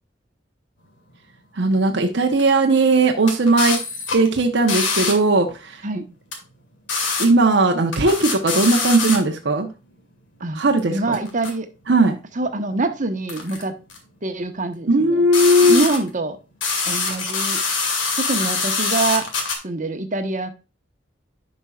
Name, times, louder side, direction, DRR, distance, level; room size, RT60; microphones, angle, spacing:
voice 1, 1.6-3.8 4.1-5.8 7.2-9.7 10.5-11.2 11.9-12.2 14.9-15.8, right 2 dB, 70° right, 3 dB, 0.9 m, -17 dB
sound 1, 2.4-2.5 3.3-5.1 6.3-6.4 6.9-7.2 7.5-7.6 7.9-9.2 10.8-10.9 11.1-11.5 13.3-13.6 13.9-14.0 15.3-16.1 16.6-19.5, left 4 dB, 85° left, 2.4 m, -24 dB
voice 2, 10.9-11.7 12.3-13.7 14.2-15.2 15.6-16.4 16.9-17.6 18.2-19.3 19.6-20.5, right 2 dB, 45° right, 7 dB, 1.2 m, -25 dB
11.0 x 5.4 x 2.4 m, 0.31 s
head